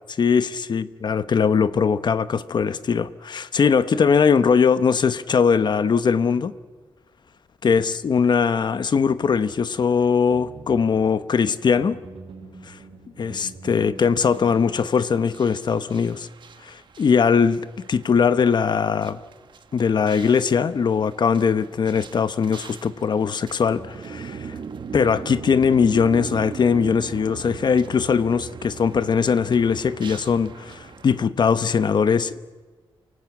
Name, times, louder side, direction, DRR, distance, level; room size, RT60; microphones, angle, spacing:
voice 1, 0.2-6.5 7.6-12.0 12.7-12.8 13.2-16.3 16.6-17.6 17.9-19.2 19.7-24.5 24.9-32.4, left 6 dB, 55° left, 0.9 m, -20 dB
sound 1, 8.9-14.6, right 4 dB, 90° right, 5.1 m, -45 dB
sound 2, 14.0-31.2, right 6 dB, 60° right, 1.2 m, -40 dB
29.0 x 18.5 x 8.4 m
wide cardioid pair, 140°, 9 cm